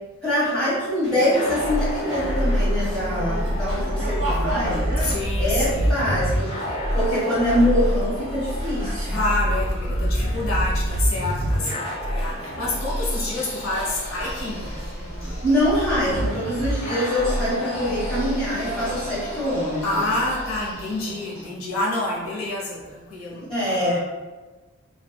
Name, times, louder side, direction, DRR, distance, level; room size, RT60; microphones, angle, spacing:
voice 1, 0.2-4.9 5.3-6.5 6.9-9.2 15.4-20.0 23.5-24.0, left 1 dB, 5° left, -11 dB, 1.3 m, -24 dB
sound 1, 1.0-19.4, right 1 dB, 50° right, 0.9 m, -36 dB
sound 2, 1.3-20.7, equal, 30° left, 0.4 m, -27 dB
voice 2, 5.0-5.9 9.1-14.7 19.8-24.0, left 2 dB, 80° left, -5 dB, 0.6 m, -28 dB
sound 3, 12.7-21.5, equal, 45° left, 1.0 m, -39 dB
3.3 x 2.1 x 2.2 m, 1.2 s
head